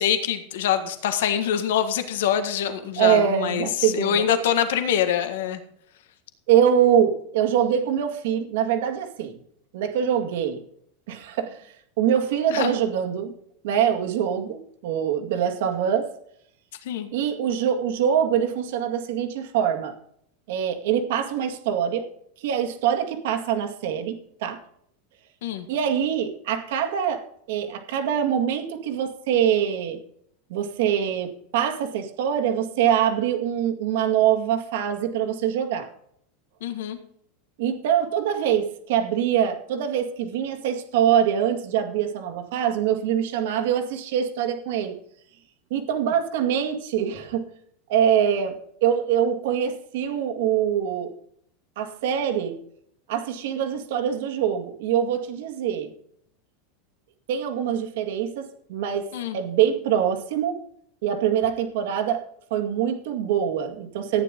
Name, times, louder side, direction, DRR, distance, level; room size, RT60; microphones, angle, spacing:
voice 1, 0.0-5.6 12.5-12.7 16.9-17.1 25.4-25.7 36.6-37.0 59.1-59.4, left 9 dB, 80° left, 8 dB, 1.7 m, -24 dB
voice 2, 3.0-4.3 6.5-9.4 9.7-10.6 11.1-11.6 12.0-13.3 13.6-16.1 17.1-19.9 20.5-22.1 22.4-24.6 25.7-30.0 30.5-35.9 37.6-45.0 45.7-47.4 47.9-51.1 51.8-52.6 53.1-55.9 57.3-60.6 61.0-62.2 62.5-64.2, right 9 dB, 65° right, 5 dB, 2.0 m, -24 dB
14.5 x 10.0 x 3.7 m, 0.68 s
supercardioid pair, 170°, 0 cm